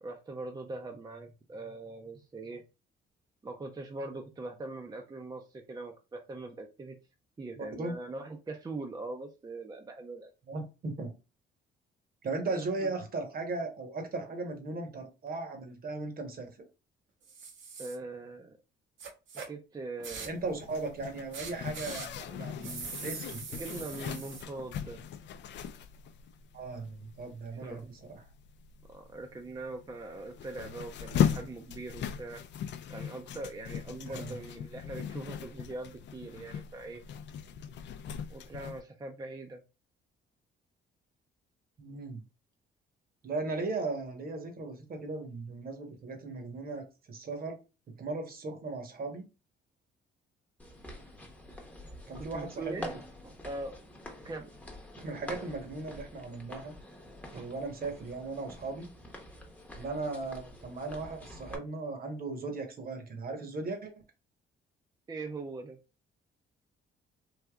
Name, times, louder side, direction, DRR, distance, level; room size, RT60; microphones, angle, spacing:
voice 1, 0.0-2.6 3.4-7.0 7.4-10.3 12.8-12.9 17.8-18.6 19.5-20.4 23.5-25.0 27.5-27.9 28.9-32.4 32.9-37.0 38.3-39.6 52.2-52.9 53.2-53.8 54.2-54.5 57.3-57.4 65.1-65.8, right 3 dB, 20° right, 0.5 m, -41 dB
voice 2, 10.5-11.1 12.2-16.5 20.2-23.4 26.5-28.2 34.1-34.4 41.8-42.2 43.2-47.6 47.9-49.3 52.1-52.9 55.0-56.7 57.3-58.9 59.7-63.9, right 3 dB, 50° right, 1.0 m, -37 dB
sound 1, 17.2-18.0 19.0-19.5 20.0-20.4 21.3-22.1 22.6-24.4, right 5 dB, 75° right, 0.9 m, -42 dB
Zipper (clothing), 20.3-38.8, left 8 dB, 65° left, 0.4 m, -38 dB
sound 2, 50.6-61.6, left 1 dB, 5° left, 0.8 m, -47 dB
3.4 x 2.7 x 2.3 m
cardioid pair, 90°, 20 cm